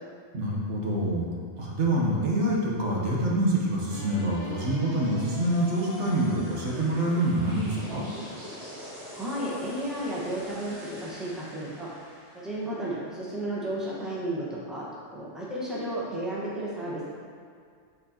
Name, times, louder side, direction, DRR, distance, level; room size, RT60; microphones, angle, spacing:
voice 1, 0.3-1.3 1.6-8.1, right 1 dB, 80° right, -4 dB, 1.3 m, -26 dB
sound 1, 3.9-13.9, left 1 dB, 40° right, 1.6 m, -43 dB
voice 2, 9.1-11.9 12.3-17.0, right 1 dB, ahead, -7 dB, 1.1 m, -33 dB
8.0 x 4.3 x 2.9 m, 2.1 s
omnidirectional pair, 1.2 m